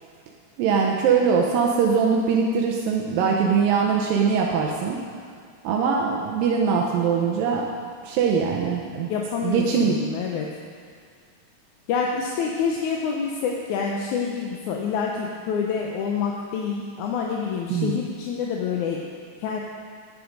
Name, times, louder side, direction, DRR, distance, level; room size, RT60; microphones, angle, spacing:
voice 1, 0.6-5.0 5.6-7.7 8.0-9.1 9.4-9.9 17.7-18.0, right 6 dB, 80° right, -1 dB, 2.5 m, -22 dB
voice 2, 9.1-10.5 11.9-19.0 19.4-19.6, left 6 dB, 75° left, 0 dB, 2.0 m, -27 dB
10.5 x 10.0 x 5.2 m, 2.1 s
omnidirectional pair, 4.0 m